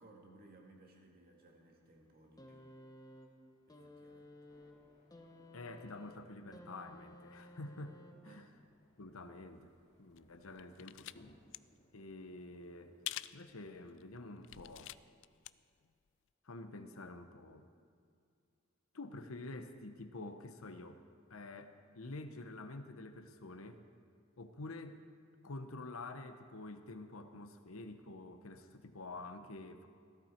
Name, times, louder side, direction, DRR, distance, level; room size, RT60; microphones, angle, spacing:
voice 1, 0.0-2.6 3.7-4.3 8.3-8.5, right 2 dB, 45° right, 0 dB, 2.2 m, -61 dB
sound 1, 2.4-8.5 9.6-9.7, left 1 dB, 20° left, 1.1 m, -56 dB
sound 2, 4.5-14.1, equal, 35° left, 2.2 m, -70 dB
voice 2, 5.5-8.5 9.0-9.7 10.0-11.4 11.9-12.9 13.3-14.9 16.4-17.7 18.9-21.0 21.3-23.8 24.4-25.0 25.4-29.9, left 2 dB, 85° left, 8 dB, 1.0 m, -48 dB
sound 3, 10.2-11.2 11.4-11.6 13.1-13.4 13.9-14.0 14.4-15.5 15.8-15.9, left 15 dB, 65° left, 0.4 m, -45 dB
16.0 x 14.5 x 4.5 m, 2.3 s
head